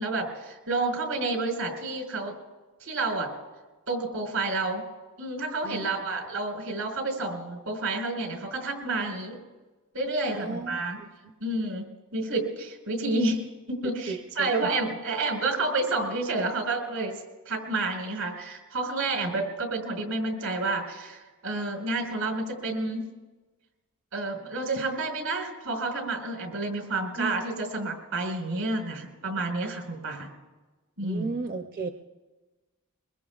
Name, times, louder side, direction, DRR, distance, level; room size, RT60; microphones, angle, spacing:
voice 1, 0.0-2.3 2.8-3.3 3.9-4.8 5.2-9.4 9.9-11.0 11.4-11.8 12.1-17.1 17.4-23.0 24.1-30.3 31.0-31.3, right 2 dB, 90° right, 2 dB, 4.6 m, -30 dB
voice 2, 10.3-10.8 14.1-14.5 27.2-27.4 31.0-31.9, right 3 dB, 40° right, 5 dB, 0.6 m, -33 dB
24.0 x 23.0 x 2.4 m, 1.2 s
head